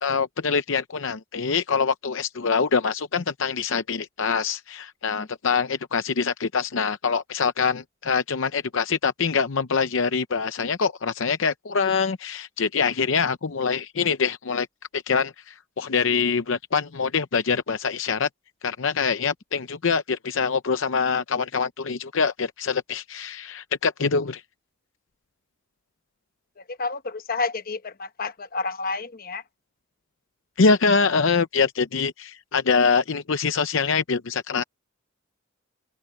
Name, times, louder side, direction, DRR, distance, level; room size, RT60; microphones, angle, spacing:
voice 1, 0.0-14.7 14.9-18.3 18.6-24.4 30.6-34.6, left 5 dB, 60° left, 0.7 m, -24 dB
voice 2, 26.7-29.4, left 4 dB, 45° left, 1.0 m, -30 dB
open air
head